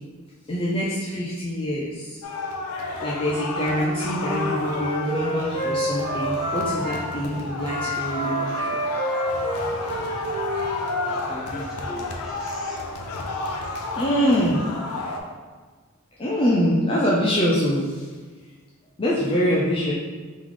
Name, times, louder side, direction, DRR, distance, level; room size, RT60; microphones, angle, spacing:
voice 1, 0.5-2.2 3.0-8.7 14.0-14.6 16.2-18.1 19.0-19.9, equal, 25° left, -6 dB, 0.4 m, -24 dB
sound 1, 2.2-15.2, left 2 dB, 90° left, 0.5 m, -31 dB
Wind instrument woodwind instrument, 3.7-7.0 7.6-11.2, right 1 dB, 85° right, 1.2 m, -28 dB
voice 2, 11.1-12.9 19.5-19.6, equal, ahead, -7 dB, 0.8 m, -39 dB
3.6 x 3.1 x 3.8 m, 1.4 s
head